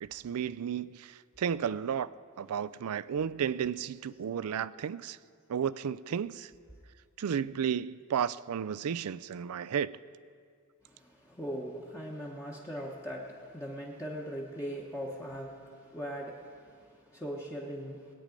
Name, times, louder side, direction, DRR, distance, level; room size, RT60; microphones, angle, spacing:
voice 1, 0.0-2.1 2.4-5.2 5.5-6.5 7.2-9.9, right 8 dB, 80° right, 18 dB, 0.4 m, -33 dB
voice 2, 10.8-18.1, equal, 15° left, -3 dB, 1.1 m, -40 dB
20.5 x 9.0 x 5.2 m, 2.2 s
head